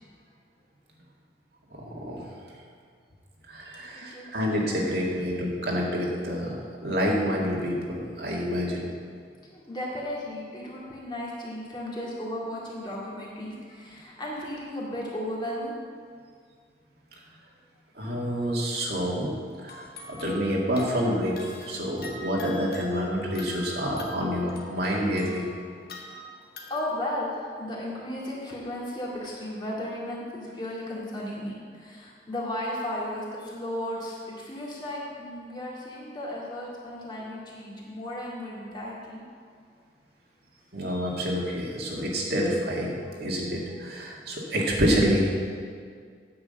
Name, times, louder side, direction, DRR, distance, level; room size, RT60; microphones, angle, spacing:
voice 1, 1.7-2.3 3.5-8.9 17.9-19.3 19.6-25.5 40.7-45.2, equal, 60° right, -3 dB, 1.9 m, -28 dB
voice 2, 3.9-4.3 4.6-4.7 9.5-15.8 25.9-26.1 26.4-39.3, left 1 dB, 25° left, -5 dB, 2.2 m, -35 dB
sound 1, 18.6-18.8 19.6-27.0, left 2 dB, 55° left, 1.3 m, -44 dB
9.2 x 6.1 x 7.7 m, 2.1 s
head